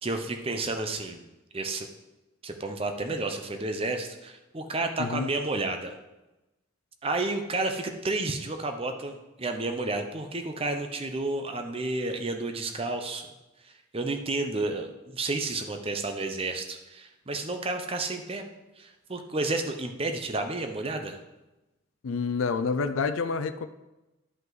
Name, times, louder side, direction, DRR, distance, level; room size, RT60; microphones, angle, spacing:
voice 1, 0.0-1.2 1.5-1.9 2.4-5.9 7.0-13.3 13.6-18.4 18.8-21.2, right 2 dB, 30° right, 6 dB, 0.7 m, -31 dB
voice 2, 22.0-23.7, left 5 dB, 80° left, 10 dB, 0.4 m, -28 dB
11.0 x 5.4 x 3.9 m, 1.0 s
head